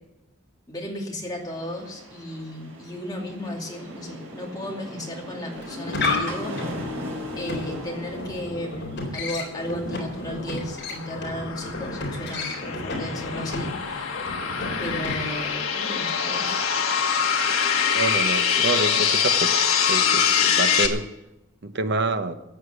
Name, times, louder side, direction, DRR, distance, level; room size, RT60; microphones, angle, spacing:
voice 1, 0.7-6.9 7.4-14.1 14.8-16.7, left 1 dB, 20° left, -1 dB, 2.5 m, -34 dB
sound 1, 1.4-14.9, right 1 dB, 70° right, 4.7 m, -40 dB
sound 2, 5.5-15.6, left 3 dB, 55° left, 4.0 m, -32 dB
sound 3, 10.0-20.9, left 7 dB, 85° left, 1.6 m, -24 dB
voice 2, 17.9-19.5 19.9-21.0 21.6-22.3, right 2 dB, 55° right, 9 dB, 0.9 m, -27 dB
14.5 x 8.2 x 8.2 m, 0.96 s
head